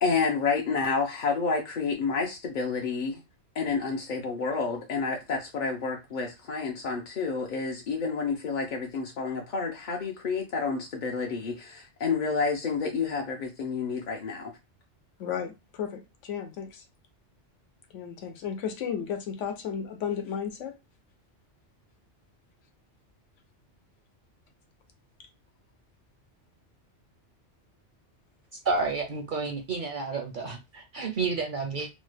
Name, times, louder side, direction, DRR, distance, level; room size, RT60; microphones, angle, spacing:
voice 1, 0.0-3.2 3.6-14.5, left 4 dB, 55° left, 0.6 m, -29 dB
voice 2, 15.2-16.8 17.9-20.8, left 7 dB, 85° left, 1.1 m, -34 dB
voice 3, 28.6-31.9, right 4 dB, 55° right, 0.6 m, -30 dB
3.0 x 2.1 x 3.2 m
omnidirectional pair, 1.2 m